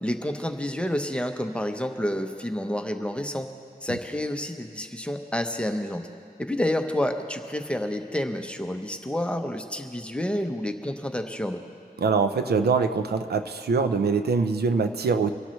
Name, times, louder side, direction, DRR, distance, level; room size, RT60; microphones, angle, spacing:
voice 1, 0.0-3.5 3.8-6.0 6.4-11.6, left 1 dB, 5° left, 5 dB, 0.8 m, -29 dB
voice 2, 12.0-15.3, right 5 dB, 85° right, 8 dB, 0.6 m, -23 dB
24.5 x 11.5 x 3.2 m, 2.3 s
wide cardioid pair, 120°, 16 cm